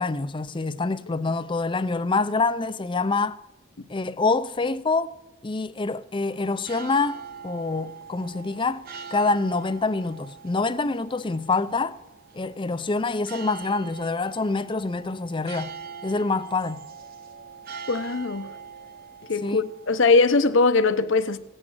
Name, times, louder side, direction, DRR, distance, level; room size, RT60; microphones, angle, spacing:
voice 1, 0.0-3.4 3.9-5.1 5.4-8.9 9.1-12.0 12.3-15.8 16.0-16.8 19.4-19.6, left 3 dB, 25° left, 0.5 m, -26 dB
sound 1, 6.3-20.0, right 6 dB, 45° right, 0.8 m, -42 dB
voice 2, 17.9-18.5 19.3-21.4, left 3 dB, 60° left, 0.7 m, -21 dB
17.5 x 8.6 x 7.7 m
head